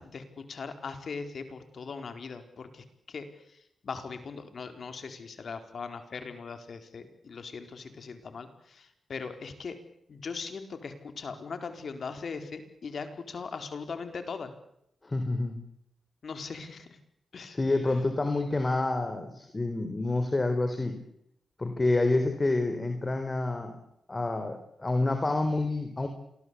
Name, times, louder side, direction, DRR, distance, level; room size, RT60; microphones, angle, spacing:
voice 1, 0.0-3.6 3.8-9.8 10.1-14.5 16.2-17.0 17.3-17.6, left 5 dB, 60° left, 8 dB, 4.3 m, -40 dB
voice 2, 15.0-15.6 17.5-21.0 21.6-23.8 24.1-26.1, left 2 dB, 30° left, 8 dB, 3.9 m, -28 dB
27.5 x 21.5 x 8.5 m, 0.77 s
cardioid pair, 65°, 0 cm